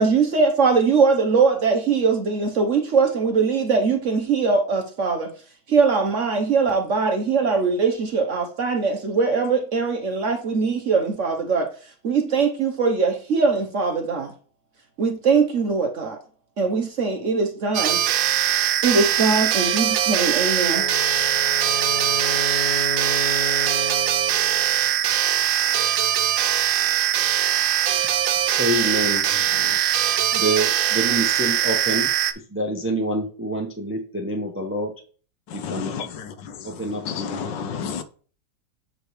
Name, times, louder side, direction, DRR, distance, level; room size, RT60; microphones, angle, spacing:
voice 1, 0.0-5.3 5.7-11.7 12.0-14.3 15.0-16.2 16.6-18.0 18.8-20.9, right 4 dB, 55° right, 1.0 m, -21 dB
sound 1, 17.7-32.3, right 11 dB, 90° right, 1.3 m, -21 dB
Wind instrument woodwind instrument, 20.7-24.9, left 3 dB, 55° left, 1.1 m, -32 dB
voice 2, 28.6-29.2 30.3-32.1 32.5-34.9 35.5-35.9 36.6-37.5, right 1 dB, 15° right, 0.5 m, -26 dB
voice 3, 35.6-36.1 37.1-38.0, left 6 dB, 80° left, 1.4 m, -29 dB
7.7 x 5.0 x 3.1 m
omnidirectional pair, 1.9 m